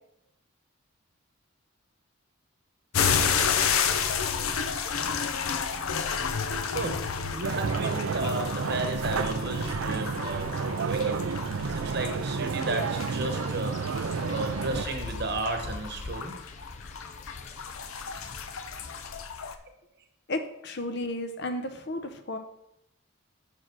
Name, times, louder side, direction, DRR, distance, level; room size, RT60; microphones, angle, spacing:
sound 1, 2.9-19.5, left 6 dB, 85° left, 0.6 m, -31 dB
voice 1, 6.7-16.4, right 2 dB, 50° right, 4 dB, 1.1 m, -34 dB
sound 2, 7.4-14.9, right 5 dB, 80° right, 0.4 m, -30 dB
Wind, 12.7-19.2, left 3 dB, 35° left, 0.4 m, -43 dB
voice 2, 20.3-22.4, left 1 dB, 50° left, 7 dB, 0.8 m, -33 dB
5.9 x 4.7 x 6.2 m, 0.79 s
head